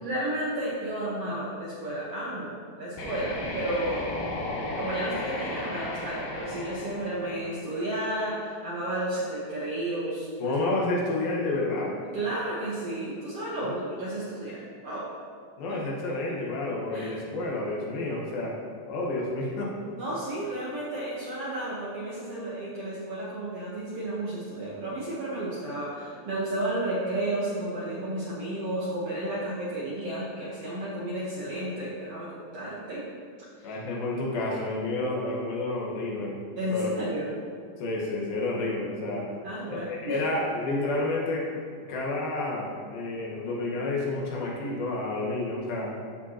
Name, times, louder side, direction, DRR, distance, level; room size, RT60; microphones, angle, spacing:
voice 1, 0.0-4.1 4.7-10.5 12.1-15.1 15.7-15.8 16.9-17.2 19.9-33.0 33.6-33.8 36.6-37.3 39.4-40.2, right 1 dB, 70° right, -7 dB, 1.5 m, -32 dB
sound 1, 2.9-7.9, left 2 dB, 70° left, 2.6 m, -35 dB
voice 2, 10.4-12.0 13.6-13.8 15.6-18.6 18.9-19.7 33.6-36.4 36.7-37.1 37.8-39.3 39.7-41.5 41.9-45.9, left 2 dB, 85° left, -3 dB, 3.1 m, -30 dB
14.0 x 5.1 x 2.8 m, 2.1 s
omnidirectional pair, 4.2 m